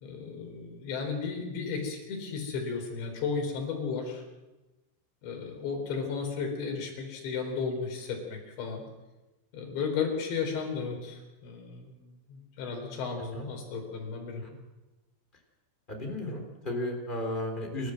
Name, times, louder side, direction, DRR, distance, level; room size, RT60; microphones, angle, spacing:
voice 1, 0.0-4.2 5.2-8.8 9.5-14.4, left 5 dB, 60° left, 2 dB, 6.2 m, -34 dB
voice 2, 15.9-17.9, left 1 dB, 10° left, 2 dB, 3.2 m, -34 dB
28.0 x 13.5 x 7.9 m, 1.1 s
omnidirectional pair, 5.8 m